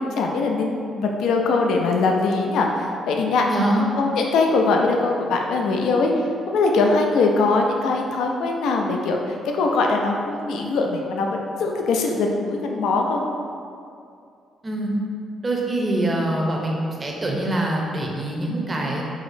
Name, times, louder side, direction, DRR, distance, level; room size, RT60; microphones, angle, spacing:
voice 1, 0.0-3.5 4.0-6.1 6.5-13.3, left 3 dB, 80° left, 1 dB, 0.4 m, -21 dB
voice 2, 3.4-3.9 14.6-14.9 15.4-19.0, right 1 dB, 25° right, -2 dB, 0.6 m, -24 dB
4.7 x 2.0 x 2.6 m, 2.4 s
cardioid pair, 90°, 0 cm